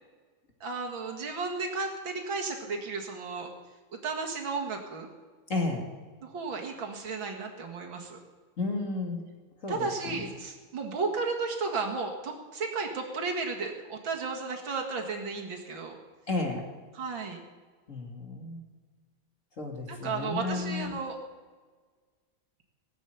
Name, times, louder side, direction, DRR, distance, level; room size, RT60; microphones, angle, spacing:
voice 1, 0.6-3.5 4.0-5.1 6.2-8.2 9.7-16.0 16.9-17.4 19.9-21.2, right 4 dB, 75° right, 2 dB, 2.7 m, -34 dB
voice 2, 5.5-5.8 8.6-9.2 9.6-10.2 16.3-16.6 17.9-18.6 19.6-20.9, left 3 dB, 40° left, 1 dB, 2.9 m, -32 dB
18.0 x 8.4 x 9.2 m, 1.5 s
omnidirectional pair, 2.2 m